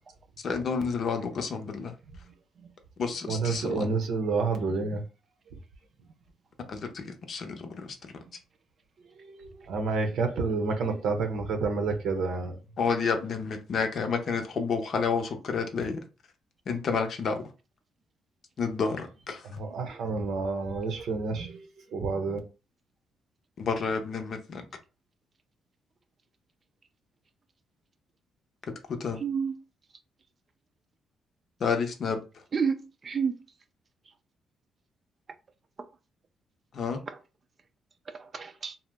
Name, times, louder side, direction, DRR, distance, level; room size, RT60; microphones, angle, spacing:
voice 1, 0.4-1.9 3.0-3.9 6.7-8.0 12.8-16.0 16.7-17.4 18.6-19.4 23.6-24.6 28.9-29.2 31.6-32.2 36.7-37.0, left 5 dB, 55° left, 0.6 m, -30 dB
voice 2, 3.2-5.0 9.2-12.6 19.4-22.4, right 4 dB, 75° right, 0.7 m, -29 dB
voice 3, 29.2-29.6 32.5-33.4 35.8-35.9 38.1-38.8, right 6 dB, 40° right, 0.4 m, -30 dB
2.7 x 2.0 x 3.4 m
cardioid pair, 90°, 0 cm